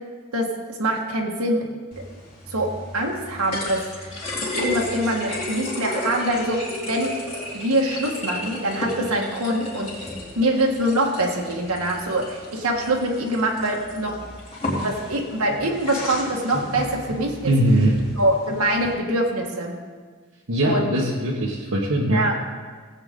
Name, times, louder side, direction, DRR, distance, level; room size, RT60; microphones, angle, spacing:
voice 1, 0.3-1.7 2.5-4.1 4.4-7.1 7.5-9.9 10.3-14.1 14.8-17.5 18.1-19.7 20.6-20.9 22.1-22.3, right 1 dB, 85° right, 0 dB, 1.7 m, -24 dB
sound 1, 1.9-18.9, left 1 dB, 25° left, 2.6 m, -33 dB
voice 2, 17.4-18.0 20.5-22.3, right 1 dB, 70° right, -4 dB, 1.3 m, -21 dB
17.0 x 8.1 x 3.8 m, 1.5 s
head